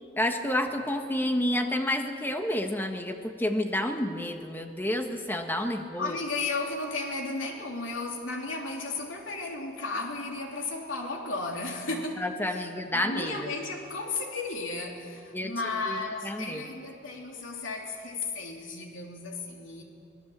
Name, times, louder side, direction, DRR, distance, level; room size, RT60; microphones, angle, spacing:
voice 1, 0.2-6.2 12.2-13.5 15.3-15.5 15.9-16.0 16.2-16.6, left 1 dB, 10° left, 5 dB, 1.4 m, -29 dB
voice 2, 6.0-19.8, left 3 dB, 90° left, 1 dB, 3.3 m, -34 dB
24.0 x 18.0 x 7.4 m, 2.6 s
head